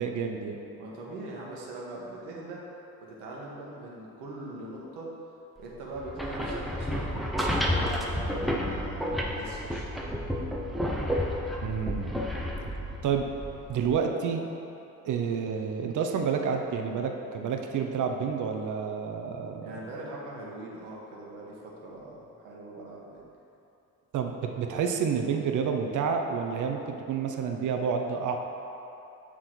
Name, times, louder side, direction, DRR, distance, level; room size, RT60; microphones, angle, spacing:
voice 1, 0.0-0.6 11.6-12.1 13.0-13.3 13.7-14.4 15.0-19.7 24.1-28.4, right 6 dB, 40° right, 3 dB, 0.8 m, -29 dB
voice 2, 0.8-2.6 3.0-5.1 5.6-7.3 7.6-9.9 19.6-23.2, right 2 dB, 65° right, -3 dB, 1.4 m, -41 dB
sound 1, 6.0-14.0, equal, ahead, 0.8 m, -31 dB
8.2 x 3.7 x 4.5 m, 2.9 s
figure-of-eight pair, 50°, 46 cm